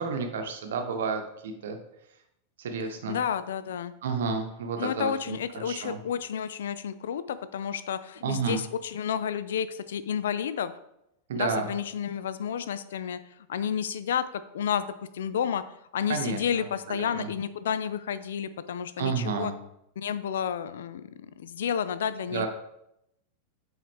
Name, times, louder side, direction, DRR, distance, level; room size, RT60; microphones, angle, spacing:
voice 1, 0.0-1.8 2.6-3.2 4.0-6.0 8.2-8.6 11.3-11.7 16.1-17.3 19.0-19.5 22.3-22.5, right 5 dB, 60° right, 5 dB, 0.9 m, -31 dB
voice 2, 3.1-3.9 4.8-10.7 11.3-13.2 13.5-15.6 15.9-19.5 20.0-21.1 21.4-22.5, left 8 dB, 60° left, 13 dB, 0.3 m, -31 dB
7.4 x 3.9 x 3.6 m, 0.82 s
figure-of-eight pair, 90°, 0 cm